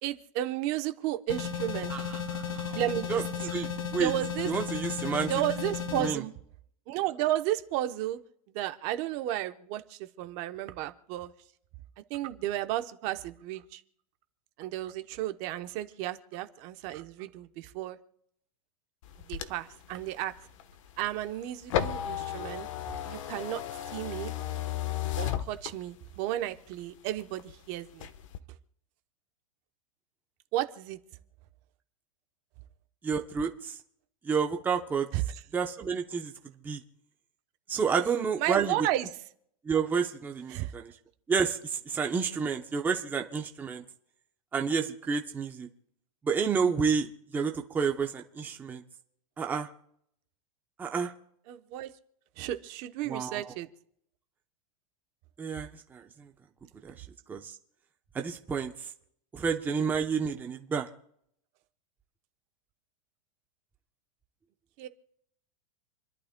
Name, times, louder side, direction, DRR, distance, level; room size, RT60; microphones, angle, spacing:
voice 1, 0.0-1.9 2.7-3.5 4.0-4.5 5.3-6.3 6.9-8.2 8.5-11.3 12.1-13.8 14.6-18.0 19.3-20.3 21.0-22.7 23.0-23.6 23.9-24.3 25.2-28.1 30.5-31.0 35.1-35.4 38.4-39.1 40.5-40.7 51.5-51.9 52.4-53.7 64.8-64.9, right 14 dB, 40° right, 0.9 m, -33 dB
sound 1, 1.3-6.1, left 6 dB, 80° left, 2.8 m, -34 dB
voice 2, 1.9-2.8 3.1-3.2 3.5-4.1 4.5-5.3 6.0-6.2 33.0-33.7 34.3-35.1 35.5-36.3 36.6-36.8 37.7-38.7 39.7-40.9 41.3-41.6 41.9-43.8 44.5-45.7 46.2-48.8 49.4-49.7 50.8-51.1 53.1-53.5 55.4-56.0 56.8-56.9 57.3-57.4 58.1-58.7 59.3-60.9, right 6 dB, 10° right, 0.8 m, -30 dB
sound 2, 19.0-26.1 26.6-27.5 27.9-28.4, left 11 dB, 65° left, 1.1 m, -35 dB
28.5 x 11.5 x 2.2 m
supercardioid pair, 160°, 17 cm